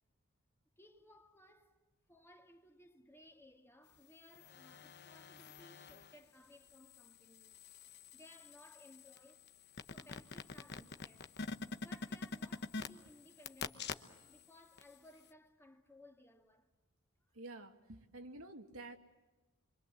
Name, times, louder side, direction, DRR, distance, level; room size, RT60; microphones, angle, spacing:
voice 1, 0.8-1.8 2.1-7.6 8.1-9.5 9.9-11.4 11.8-16.7 17.3-17.4, left 1 dB, 10° left, 1.9 m, -61 dB
sound 1, 4.2-6.2 6.7-14.4 14.8-14.9, left 4 dB, 50° left, 1.1 m, -47 dB
voice 2, 17.3-19.0, right 2 dB, 75° right, 2.2 m, -50 dB
27.0 x 24.5 x 7.7 m
head